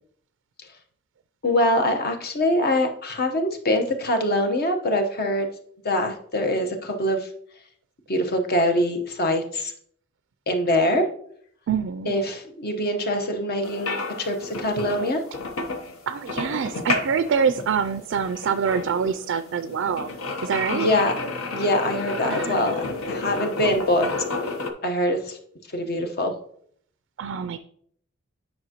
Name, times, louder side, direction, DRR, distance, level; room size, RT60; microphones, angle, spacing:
voice 1, 1.4-5.5 5.8-7.3 8.1-9.7 10.5-11.1 12.1-15.2 20.7-22.8 23.1-24.1 24.8-25.4 25.7-26.3, left 1 dB, 50° left, 5 dB, 1.0 m, -24 dB
voice 2, 11.7-12.1 16.1-20.1 20.4-20.9 22.3-22.9 27.2-27.6, right 6 dB, 60° right, 11 dB, 0.4 m, -25 dB
sound 1, 13.6-24.7, left 3 dB, 75° left, 0.9 m, -31 dB
9.5 x 5.5 x 2.9 m, 0.63 s
head